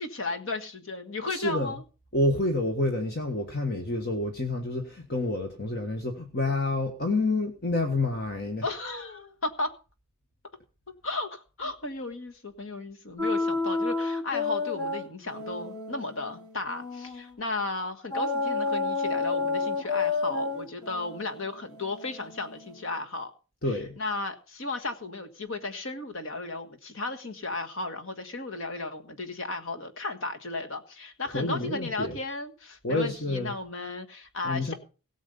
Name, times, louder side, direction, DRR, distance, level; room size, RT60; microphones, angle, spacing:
voice 1, 0.0-1.8 8.6-9.7 11.0-23.3 24.0-34.7, left 3 dB, 60° left, 1.5 m, -34 dB
voice 2, 1.3-1.8 2.1-8.6 23.6-24.0 31.2-32.2 32.8-33.5 34.4-34.7, left 2 dB, 45° left, 1.5 m, -28 dB
sound 1, 13.2-17.3 18.1-22.9, left 3 dB, 20° left, 2.8 m, -31 dB
17.5 x 7.2 x 5.4 m
head